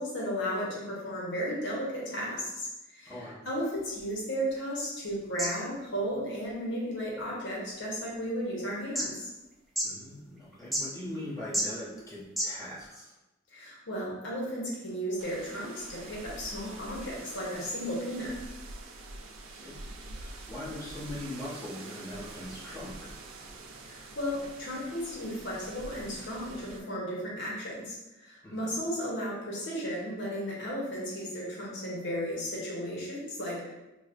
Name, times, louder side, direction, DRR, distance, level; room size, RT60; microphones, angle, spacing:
voice 1, 0.0-3.1 3.4-9.3 13.5-18.3 23.8-27.9 28.2-33.7, equal, 65° left, -4 dB, 0.9 m, -34 dB
voice 2, 3.0-3.4 9.8-13.2 19.4-19.9 20.2-23.1 28.4-28.8, left 1 dB, 15° left, -9 dB, 1.0 m, -41 dB
sound 1, 3.7-12.9, equal, ahead, 0.5 m, -39 dB
sound 2, 15.2-26.8, right 2 dB, 85° right, 0.4 m, -45 dB
5.0 x 2.1 x 2.5 m, 1.0 s
head